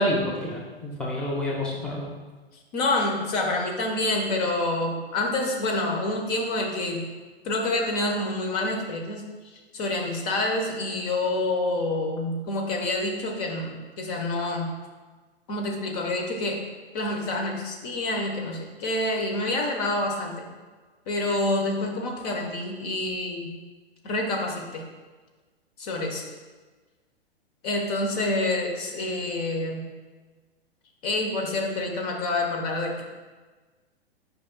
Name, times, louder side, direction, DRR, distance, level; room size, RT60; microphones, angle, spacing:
voice 1, 0.0-2.1, left 1 dB, 5° left, -4 dB, 0.8 m, -28 dB
voice 2, 2.7-7.1 7.4-9.2 9.7-14.7 15.5-16.6 16.9-20.5 21.1-23.5 24.0-24.8 25.8-26.2 27.6-29.8 31.0-33.0, left 2 dB, 35° left, 1 dB, 1.0 m, -27 dB
8.5 x 5.2 x 2.2 m, 1.3 s
figure-of-eight pair, 110°, 32 cm